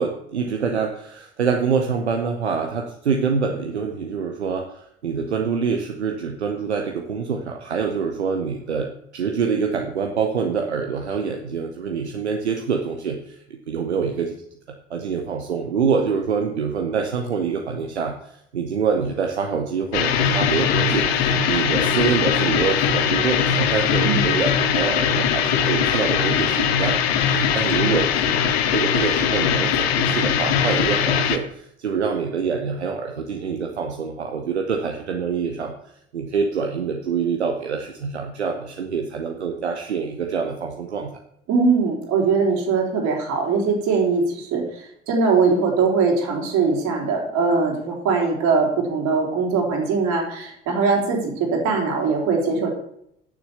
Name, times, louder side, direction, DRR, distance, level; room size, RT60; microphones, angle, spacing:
voice 1, 0.0-13.2 13.5-14.4 14.9-27.0 27.3-28.1 28.5-35.7 36.1-41.2, right 6 dB, 85° right, 3 dB, 0.9 m, -25 dB
sound 1, 19.9-31.4, left 7 dB, 70° left, 1.1 m, -21 dB
voice 2, 41.5-52.7, right 4 dB, 55° right, 0 dB, 3.7 m, -21 dB
9.8 x 7.0 x 7.0 m, 0.74 s
figure-of-eight pair, 60°, 32 cm